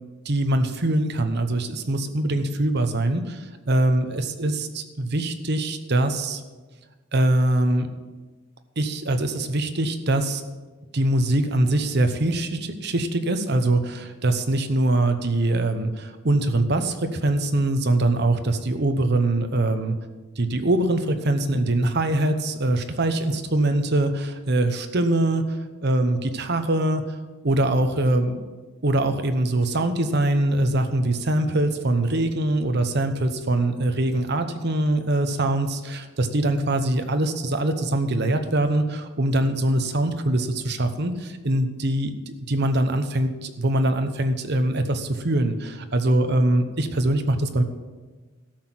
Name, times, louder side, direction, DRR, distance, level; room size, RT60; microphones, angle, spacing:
voice 1, 0.2-6.4 7.1-7.9 8.8-10.4 10.9-19.9 20.4-27.0 27.4-28.4 28.8-42.1 42.5-47.6, right 1 dB, 50° right, 8 dB, 1.0 m, -23 dB
13.0 x 6.1 x 7.6 m, 1.3 s
head